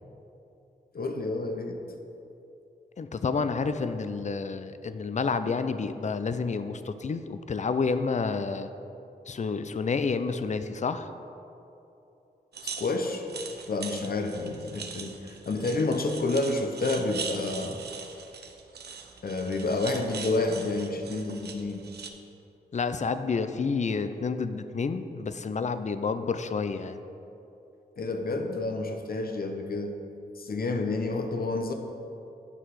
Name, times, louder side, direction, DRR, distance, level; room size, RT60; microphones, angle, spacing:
voice 1, 0.9-1.8 12.6-13.3 13.7-17.8 19.2-21.9 28.0-30.0 30.4-31.7, left 2 dB, 60° left, 5 dB, 0.9 m, -29 dB
voice 2, 3.0-8.7 9.3-11.1 22.7-27.0, left 4 dB, 45° left, 11 dB, 0.5 m, -29 dB
sound 1, 12.5-22.1, right 5 dB, 75° right, 0.7 m, -41 dB
8.9 x 6.0 x 4.8 m, 2.8 s
cardioid pair, 55°, 17 cm